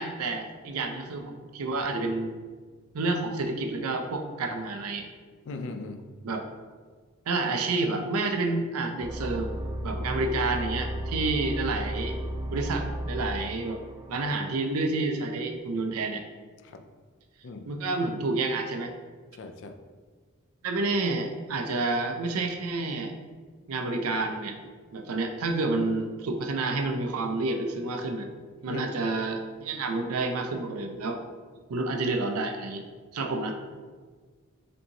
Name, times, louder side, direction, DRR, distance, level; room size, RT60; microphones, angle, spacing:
voice 1, 0.0-2.3 2.9-5.1 6.2-6.4 7.3-9.5 9.8-12.2 12.5-13.8 14.1-16.2 17.7-18.9 20.6-23.2 23.7-24.6 24.9-28.3 28.6-31.2 31.7-32.8 33.1-33.6, right 3 dB, 90° right, 5 dB, 0.5 m, -29 dB
voice 2, 5.5-6.1 16.6-16.8 17.4-17.7 19.4-19.8 28.7-28.8, left 3 dB, 60° left, 6 dB, 0.4 m, -38 dB
sound 1, 9.0-14.3, right 1 dB, 15° right, 0.3 m, -34 dB
5.2 x 2.8 x 2.8 m, 1.5 s
head